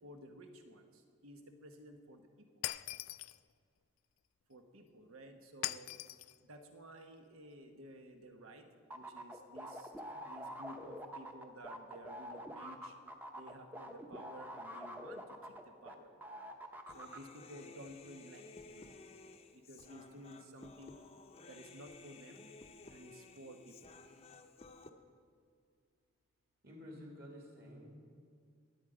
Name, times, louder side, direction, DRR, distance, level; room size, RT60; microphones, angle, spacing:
voice 1, 0.0-2.6 4.5-5.9 6.4-8.7 8.9-12.9 13.3-16.2 16.9-18.9 19.5-21.0 21.5-22.5 22.9-24.0, right 1 dB, 85° right, 5 dB, 1.2 m, -54 dB
Shatter, 2.6-3.4 5.6-6.4, left 16 dB, 75° left, 0.3 m, -40 dB
sound 1, 8.9-15.9 16.2-17.2, equal, 10° right, 0.7 m, -46 dB
Human voice, 16.9-24.9, left 3 dB, 30° left, 0.6 m, -56 dB
voice 2, 26.6-27.9, equal, 45° right, 0 dB, 2.4 m, -51 dB
21.0 x 8.2 x 5.0 m, 2.2 s
head